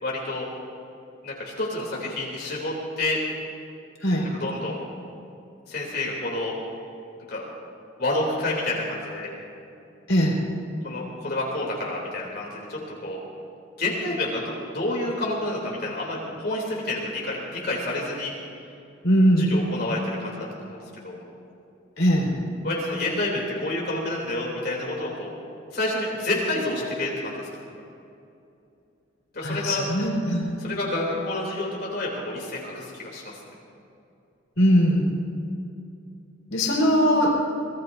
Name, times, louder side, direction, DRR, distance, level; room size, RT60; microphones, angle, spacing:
voice 1, 0.0-0.5 1.2-3.2 4.2-4.8 5.7-6.5 7.3-7.4 8.0-9.3 10.8-13.2 13.8-18.3 19.4-20.8 21.0-21.2 22.6-25.3 25.7-27.5 29.3-29.8 30.6-33.2, left 2 dB, 50° left, -4 dB, 3.2 m, -29 dB
voice 2, 10.1-10.4 19.0-19.5 22.0-22.3 29.4-30.5 34.6-35.1 36.5-37.4, equal, 70° left, -3 dB, 4.4 m, -20 dB
25.5 x 20.0 x 2.7 m, 2.7 s
head